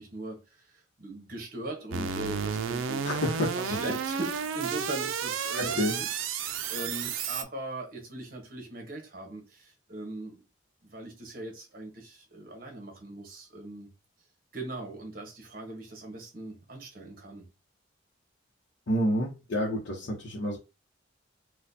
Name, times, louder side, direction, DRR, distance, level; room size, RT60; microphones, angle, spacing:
voice 1, 0.0-3.0 3.5-6.1 6.4-10.4 10.8-13.9 14.5-17.5, right 2 dB, 45° right, 1.2 m, -40 dB
sound 1, 1.9-7.4, right 6 dB, 90° right, 0.4 m, -32 dB
voice 2, 3.0-3.6 5.5-6.0 18.9-20.6, equal, 75° left, 0.8 m, -29 dB
4.2 x 2.3 x 2.7 m
head